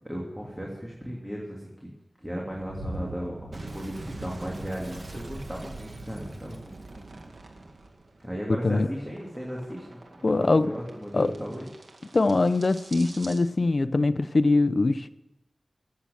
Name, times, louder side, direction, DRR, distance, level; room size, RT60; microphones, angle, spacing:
voice 1, 0.0-1.9 2.2-6.8 8.2-11.7, equal, 10° right, -3 dB, 2.8 m, -36 dB
sound 1, 2.5-13.4, right 1 dB, 85° right, 2.0 m, -45 dB
Boom, 3.5-8.7, right 2 dB, 50° right, 1.3 m, -42 dB
voice 2, 8.5-8.9 10.2-10.7 11.1-11.3 12.1-15.2, left 3 dB, 55° left, 11 dB, 0.7 m, -23 dB
13.5 x 8.4 x 9.1 m, 1.0 s
wide cardioid pair, 80°, 0 cm